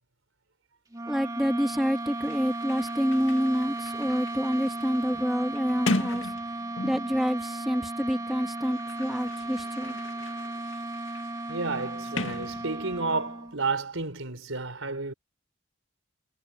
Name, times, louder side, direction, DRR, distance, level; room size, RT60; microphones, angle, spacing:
sound 1, 0.9-13.6, right 2 dB, 20° right, 2.0 m, -35 dB
voice 1, 1.1-6.3 6.8-10.0, equal, ahead, 2.1 m, -27 dB
Sliding door, 1.9-2.0 2.2-7.2 8.2-13.1, left 2 dB, 70° left, 2.1 m, -37 dB
voice 2, 11.5-15.1, right 3 dB, 85° right, 4.8 m, -31 dB
head